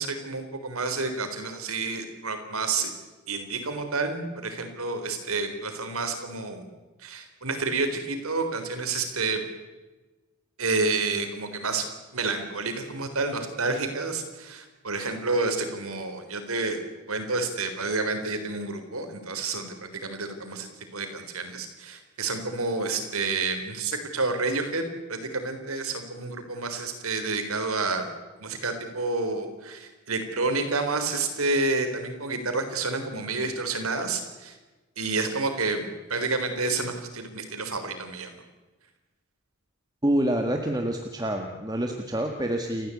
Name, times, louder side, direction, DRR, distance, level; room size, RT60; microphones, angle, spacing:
voice 1, 0.0-2.9 3.3-6.7 7.0-9.4 10.6-11.8 12.1-16.8 17.1-24.8 25.1-28.1 28.4-34.6 35.0-38.4, right 3 dB, 85° right, 7 dB, 3.9 m, -29 dB
voice 2, 40.0-42.9, right 1 dB, 20° right, 3 dB, 1.6 m, -27 dB
29.5 x 14.5 x 8.5 m, 1.2 s
head